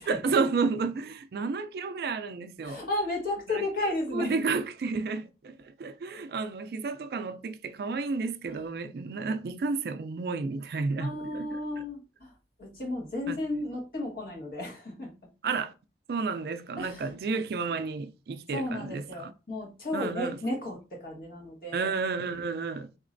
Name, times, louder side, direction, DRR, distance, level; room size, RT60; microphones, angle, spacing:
voice 1, 0.1-2.8 3.5-3.6 4.1-11.5 13.3-13.4 15.4-15.7 16.1-19.3 19.9-20.4 21.7-22.9, right 4 dB, 60° right, 0.3 m, -31 dB
voice 2, 2.6-4.3 11.0-12.3 12.6-15.1 16.8-17.1 18.5-22.0, left 1 dB, 55° left, 1.4 m, -33 dB
4.1 x 2.9 x 2.5 m
head